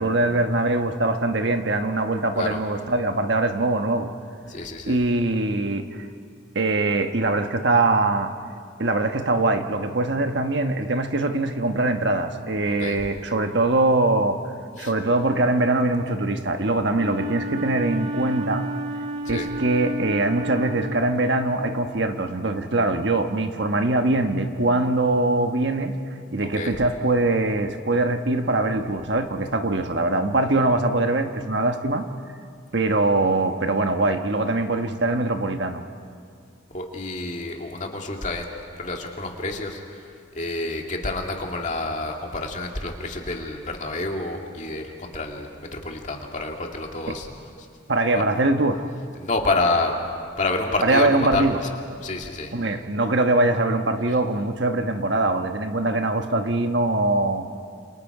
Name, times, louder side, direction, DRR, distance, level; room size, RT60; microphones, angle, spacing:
voice 1, 0.0-4.1 4.9-5.9 6.5-8.3 8.8-14.4 14.8-18.6 19.3-25.9 26.3-32.1 32.7-35.8 47.1-47.2 47.9-48.8 50.8-51.6 52.5-57.5, right 2 dB, 60° right, 6 dB, 1.2 m, -22 dB
voice 2, 4.5-5.0 12.8-13.0 14.8-14.9 19.3-19.5 26.4-26.7 36.7-39.8 40.4-47.3 48.2-48.3 49.2-49.9 50.4-51.5 52.0-52.5, left 2 dB, 40° left, 1 dB, 2.3 m, -28 dB
Wind instrument woodwind instrument, 16.9-21.7, right 1 dB, 35° right, 2.0 m, -31 dB
28.5 x 28.5 x 4.9 m, 2.3 s
head